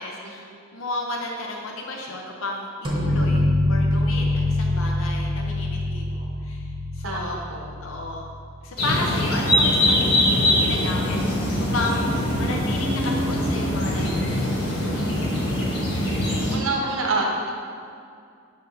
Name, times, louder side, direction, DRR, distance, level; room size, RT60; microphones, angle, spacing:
voice 1, 0.0-2.7 2.9-7.4 7.8-8.2 8.6-11.2 11.6-14.5, left 2 dB, 75° left, 0 dB, 0.7 m, -32 dB
sound 1, 2.8-8.4, left 1 dB, 25° right, 1.0 m, -24 dB
voice 2, 7.0-7.6 16.5-17.5, right 2 dB, 90° right, 0 dB, 0.9 m, -27 dB
sound 2, 8.8-16.6, left 1 dB, 55° left, 1.5 m, -22 dB
6.7 x 3.5 x 5.7 m, 2.4 s
head